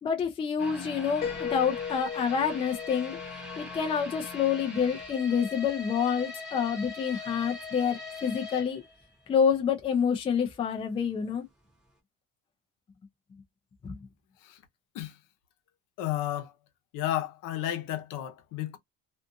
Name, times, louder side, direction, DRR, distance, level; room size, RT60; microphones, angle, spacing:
voice 1, 0.0-3.2 3.6-8.8 9.3-11.4 13.8-14.0, left 7 dB, 15° left, 0.4 m, -28 dB
sound 1, 0.6-9.6 9.9-10.0 10.5-10.6, left 3 dB, ahead, 0.8 m, -41 dB
Piano, 1.2-5.0, left 7 dB, 35° left, 1.1 m, -38 dB
voice 2, 16.0-16.5 16.9-18.8, left 13 dB, 70° left, 0.8 m, -32 dB
2.5 x 2.4 x 2.5 m
cardioid pair, 165°, 33 cm